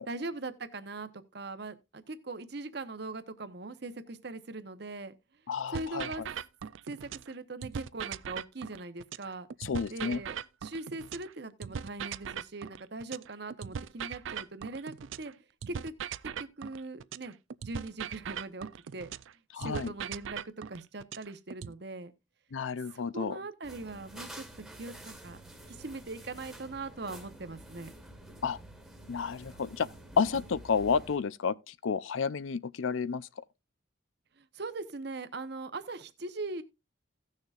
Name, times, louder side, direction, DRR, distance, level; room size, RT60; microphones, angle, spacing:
voice 1, 0.1-5.1 5.7-6.2 6.9-9.5 9.9-15.3 15.7-15.9 16.2-17.3 17.6-19.1 19.6-22.1 22.9-24.4 24.8-25.4 25.7-27.9 34.4-36.6, right 2 dB, 55° right, 0.9 m, -41 dB
voice 2, 5.5-6.1 9.6-10.2 19.5-19.9 22.5-23.4 28.4-28.6 29.1-29.9 30.2-33.3, left 6 dB, 85° left, 0.5 m, -31 dB
sound 1, 5.7-7.3 7.6-11.3 11.6-15.3 15.6-19.3 19.6-21.7, right 8 dB, 75° right, 0.4 m, -40 dB
sound 2, 23.6-31.2, right 1 dB, ahead, 1.5 m, -49 dB
17.0 x 6.6 x 2.4 m
head